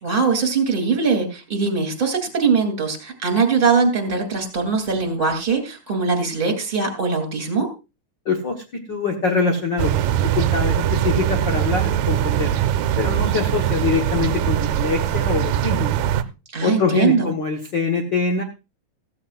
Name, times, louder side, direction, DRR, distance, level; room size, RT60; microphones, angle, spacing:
voice 1, 0.0-7.7 16.5-17.3, right 5 dB, 15° right, 6 dB, 2.6 m, -21 dB
voice 2, 8.2-10.1 10.4-12.5 13.0-15.9 16.6-18.4, left 4 dB, 70° left, 2 dB, 1.0 m, -23 dB
sound 1, 9.8-16.2, right 11 dB, 80° right, 2.4 m, -21 dB
16.0 x 13.5 x 2.5 m, 0.28 s
omnidirectional pair, 4.1 m